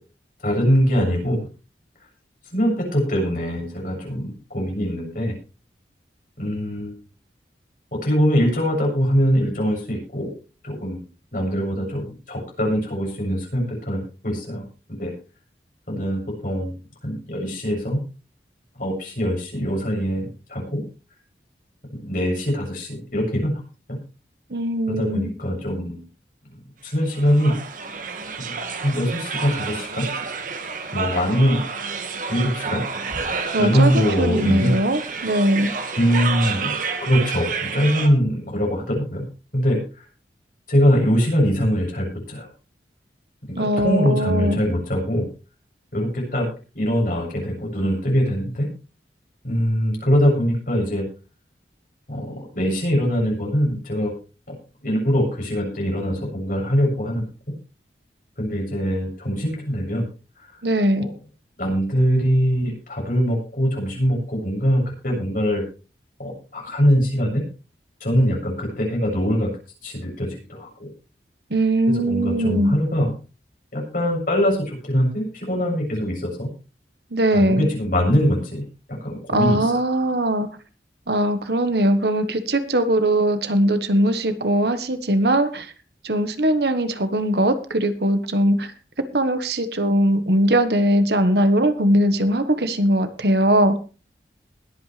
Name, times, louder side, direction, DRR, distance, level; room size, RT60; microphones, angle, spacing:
voice 1, 0.4-1.4 2.5-5.3 6.4-6.9 7.9-10.3 10.6-11.0 11.3-14.6 14.9-15.1 15.9-16.8 17.0-18.0 18.8-20.8 21.9-23.5 23.9-24.0 24.9-26.0 26.8-27.5 28.4-28.6 28.8-30.1 30.9-31.6 32.3-32.8 33.6-34.7 36.0-39.3 39.5-39.8 40.7-42.5 43.5-45.3 45.9-46.5 46.7-48.7 49.4-51.0 52.1-54.1 54.5-54.6 54.8-57.2 58.4-60.0 61.0-61.1 61.6-65.6 66.2-67.5 68.0-69.5 69.8-70.9 71.9-73.1 73.7-76.5 77.3-79.7, equal, 50° left, 0 dB, 7.2 m, -22 dB
voice 2, 24.5-25.3 33.5-35.7 43.6-44.6 60.6-61.1 71.5-72.7 77.1-77.7 79.3-80.5 81.1-85.7 86.0-88.7 89.1-93.7, right 1 dB, 65° right, 10 dB, 1.4 m, -20 dB
sound 1, 27.1-38.1, right 5 dB, 50° right, 1.8 m, -30 dB
21.0 x 8.7 x 3.4 m, 0.34 s
head